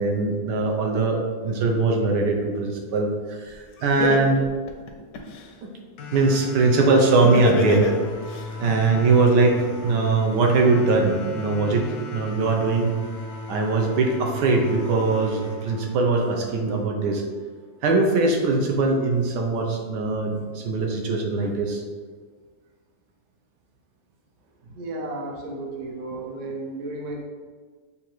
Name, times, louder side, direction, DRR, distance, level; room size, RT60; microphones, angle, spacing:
voice 1, 0.0-4.4 5.6-5.7 6.1-7.9 8.6-12.9 13.5-17.2 17.8-21.8, right 3 dB, 75° right, 1 dB, 1.2 m, -21 dB
Laughter, 3.5-3.6 4.0-5.5 7.2-8.4, left 3 dB, 70° left, 0.8 m, -25 dB
sound 1, 6.0-17.0, left 2 dB, 90° left, 1.4 m, -37 dB
voice 2, 24.6-27.2, right 2 dB, 60° right, 0 dB, 0.9 m, -33 dB
6.8 x 2.6 x 3.0 m, 1.5 s
omnidirectional pair, 1.9 m